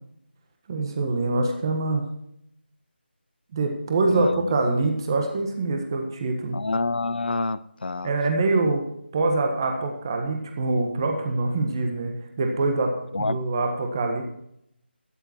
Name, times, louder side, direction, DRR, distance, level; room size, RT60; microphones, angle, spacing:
voice 1, 0.7-2.0 3.5-6.6 8.0-8.8 9.1-14.2, right 3 dB, 20° right, 3 dB, 1.5 m, -25 dB
voice 2, 4.1-4.5 6.5-8.1 13.1-13.4, left 3 dB, 60° left, 17 dB, 0.6 m, -27 dB
13.0 x 10.0 x 4.5 m, 0.76 s
figure-of-eight pair, 175°, 6 cm